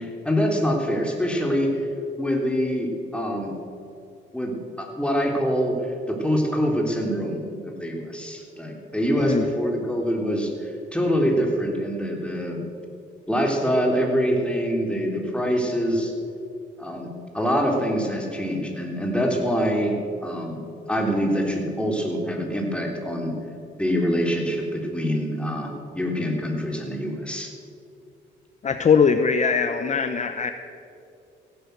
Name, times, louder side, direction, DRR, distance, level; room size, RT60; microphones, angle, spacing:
voice 1, 0.0-1.7 2.2-3.5 4.3-5.8 6.1-12.7 13.3-16.1 16.8-19.9 20.2-20.6 20.9-23.3 23.8-27.5, equal, 5° left, 0 dB, 3.4 m, -25 dB
voice 2, 9.2-9.5 28.6-30.5, left 6 dB, 35° left, 9 dB, 0.7 m, -21 dB
15.5 x 11.0 x 8.0 m, 2.6 s
cardioid pair, 90°, 20 cm